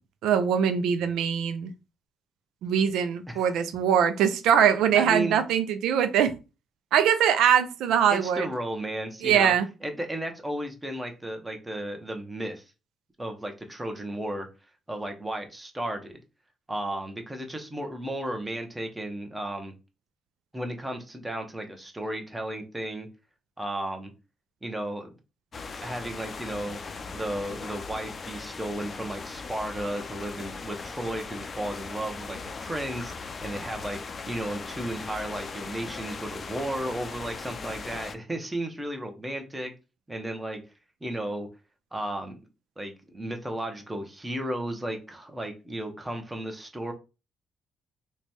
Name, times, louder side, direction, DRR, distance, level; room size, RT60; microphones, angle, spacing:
voice 1, 0.2-1.7 2.6-6.3 6.9-8.5 9.2-9.7, right 8 dB, 85° right, 0.4 m, -22 dB
voice 2, 4.9-5.4 8.1-9.5 9.8-12.6 13.2-14.5 14.9-16.2 16.7-19.7 20.5-23.1 23.6-24.1 24.6-25.2 25.8-26.8 27.1-33.1 33.4-39.7 40.1-40.6 41.0-41.5 41.9-42.4 42.8-46.9, right 1 dB, 10° right, 0.8 m, -34 dB
sound 1, 25.5-38.2, left 4 dB, 40° left, 0.4 m, -39 dB
3.1 x 2.2 x 4.1 m
cardioid pair, 90°, 0 cm